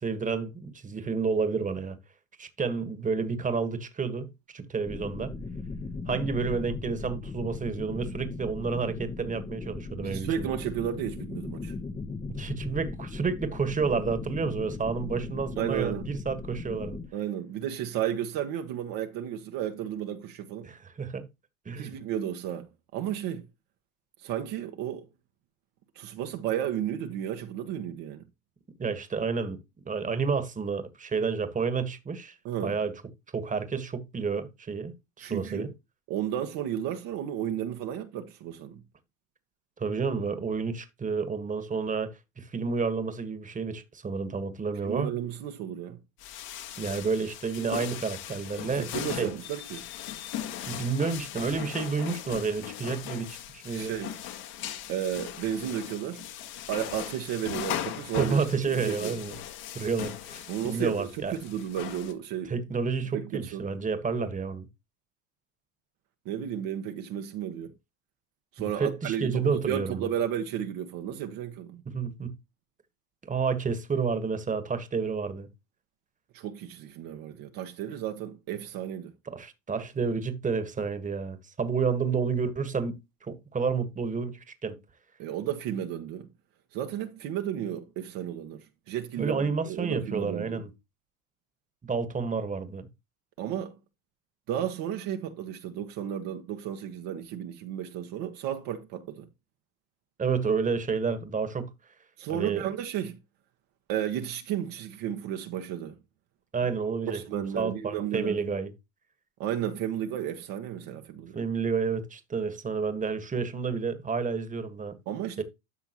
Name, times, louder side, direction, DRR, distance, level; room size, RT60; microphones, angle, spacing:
voice 1, 0.0-2.0 2.4-5.3 6.1-10.5 12.3-17.0 20.6-21.3 21.6-21.9 28.8-29.6 29.9-32.3 32.6-32.9 33.3-35.7 39.8-45.1 46.8-48.9 49.2-49.3 50.7-53.9 58.2-59.4 59.7-61.3 62.5-64.7 68.6-70.1 71.8-72.3 73.3-75.5 79.3-82.9 83.2-84.8 89.2-90.7 91.8-92.9 100.2-101.7 102.3-102.7 106.5-108.7 111.3-115.0 115.4-115.5, right 5 dB, 20° right, 1.5 m, -30 dB
sound 1, 4.8-17.1, left 3 dB, 15° left, 0.9 m, -38 dB
voice 2, 10.0-11.7 15.6-16.1 17.1-20.7 21.8-23.5 24.2-25.0 25.9-28.2 32.4-32.7 35.2-35.7 36.1-38.8 44.8-46.0 48.8-49.8 53.7-54.1 54.9-56.2 56.7-59.2 60.5-62.5 63.1-63.6 66.2-67.7 68.5-71.8 76.3-79.1 85.2-86.3 86.7-90.6 93.4-93.8 94.5-99.3 102.2-103.2 103.9-106.0 107.1-108.4 109.4-111.4 115.1-115.4, right 10 dB, 55° right, 1.3 m, -33 dB
sound 2, 46.2-62.1, left 10 dB, 60° left, 1.9 m, -39 dB
12.5 x 5.8 x 3.0 m
hypercardioid pair, 90°, 41 cm